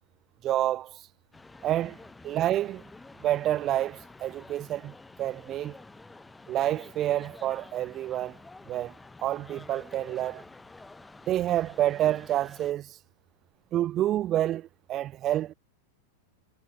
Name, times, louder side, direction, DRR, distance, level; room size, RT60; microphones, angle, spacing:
voice 1, 0.4-1.0 1.6-2.0 2.2-2.8 3.2-4.9 5.2-5.8 6.5-8.4 8.7-8.9 9.2-10.4 11.3-13.0 13.7-15.5, right 13 dB, 30° right, 0.5 m, -28 dB
sound 1, 1.3-12.7, left 3 dB, 10° left, 0.8 m, -50 dB
figure-of-eight pair, 90°, 0 cm